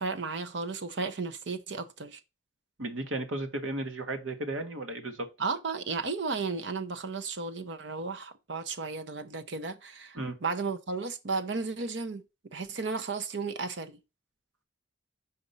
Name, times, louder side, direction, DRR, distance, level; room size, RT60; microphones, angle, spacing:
voice 1, 0.0-2.2 5.4-12.2 12.5-14.0, right 4 dB, 65° right, 0.7 m, -34 dB
voice 2, 2.8-5.3 10.1-10.4, right 2 dB, 90° right, 1.4 m, -34 dB
5.1 x 4.2 x 5.4 m
head